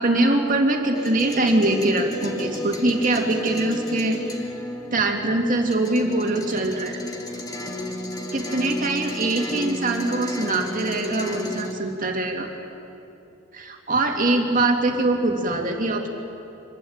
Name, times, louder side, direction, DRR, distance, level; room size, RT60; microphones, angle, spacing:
voice 1, 0.0-4.2 4.9-7.0 8.3-12.5 13.5-16.1, right 2 dB, 40° right, 2 dB, 2.6 m, -23 dB
sound 1, 0.9-11.7, equal, 20° left, 2.3 m, -33 dB
25.0 x 21.5 x 8.9 m, 2.9 s
head